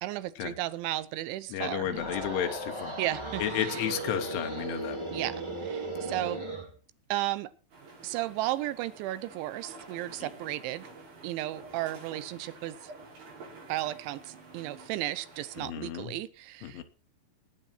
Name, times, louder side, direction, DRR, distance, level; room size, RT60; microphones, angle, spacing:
voice 1, 0.0-1.9 3.0-3.8 5.1-6.4 7.1-7.5 8.0-10.9 11.2-12.9 13.7-16.8, right 15 dB, 85° right, 15 dB, 3.1 m, -34 dB
voice 2, 1.5-3.0 3.4-5.0 10.2-10.3 15.6-16.1 16.6-16.8, left 10 dB, 85° left, 7 dB, 3.8 m, -32 dB
sound 1, 1.8-6.7, right 2 dB, 15° right, 1.2 m, -36 dB
sound 2, 7.7-15.7, right 3 dB, 60° right, 8.0 m, -49 dB
19.5 x 8.9 x 4.4 m, 0.39 s
omnidirectional pair, 5.3 m